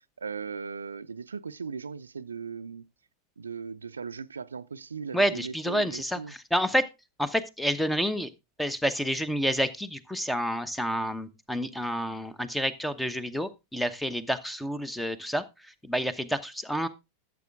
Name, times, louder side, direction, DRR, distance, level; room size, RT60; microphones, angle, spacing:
voice 1, 0.2-2.9 3.4-6.3, right 5 dB, 75° right, 0.5 m, -38 dB
voice 2, 5.1-6.8 7.2-8.3 8.6-15.4 15.8-16.9, equal, 5° left, 1.0 m, -29 dB
13.5 x 7.6 x 3.6 m
figure-of-eight pair, 90°, 0 cm